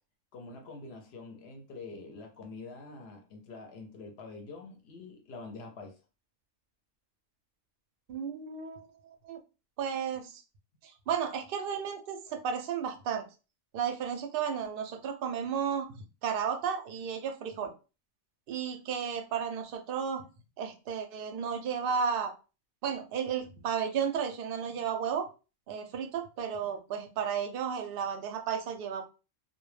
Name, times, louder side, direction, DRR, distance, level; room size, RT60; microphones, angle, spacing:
voice 1, 0.3-6.0, left 3 dB, 65° left, 0.7 m, -46 dB
voice 2, 8.1-8.9 9.2-9.4 9.8-10.4 10.8-13.2 13.7-15.9 16.2-17.7 18.5-20.2 20.6-22.3 22.8-25.3 25.7-29.0, right 7 dB, 60° right, 0.6 m, -33 dB
2.2 x 2.1 x 3.1 m
omnidirectional pair, 1.3 m